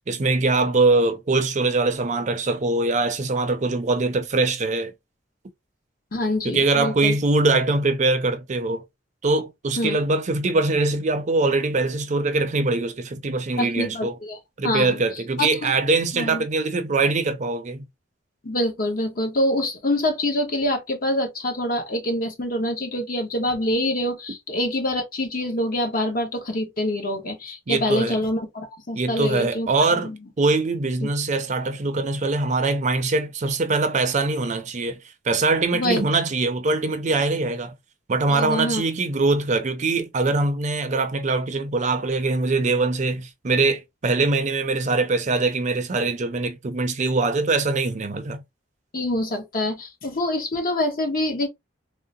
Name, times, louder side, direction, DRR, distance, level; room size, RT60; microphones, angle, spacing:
voice 1, 0.1-4.9 6.4-8.8 9.2-14.2 14.6-17.9 27.7-28.2 28.9-35.0 35.3-37.8 38.1-48.4, right 3 dB, 40° right, 0.5 m, -22 dB
voice 2, 6.1-7.2 9.8-10.0 13.6-14.4 14.6-15.0 15.4-15.7 16.1-16.4 18.4-30.2 31.0-31.1 35.7-36.0 38.3-38.8 48.9-51.5, left 1 dB, 50° left, 1.0 m, -25 dB
3.7 x 2.1 x 2.6 m
head